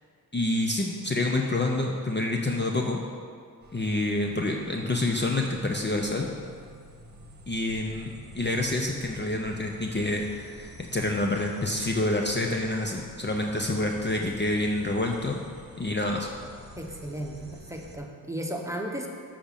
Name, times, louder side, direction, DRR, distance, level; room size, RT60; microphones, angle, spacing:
voice 1, 0.3-3.0 3.7-6.3 7.5-15.4 15.8-16.3, left 2 dB, 30° left, 1 dB, 0.7 m, -27 dB
sound 1, 3.6-18.0, right 1 dB, 25° right, 1.4 m, -48 dB
voice 2, 16.8-19.1, right 1 dB, 10° right, 0 dB, 1.2 m, -35 dB
7.8 x 5.1 x 7.0 m, 2.1 s
cardioid pair, 65°, 38 cm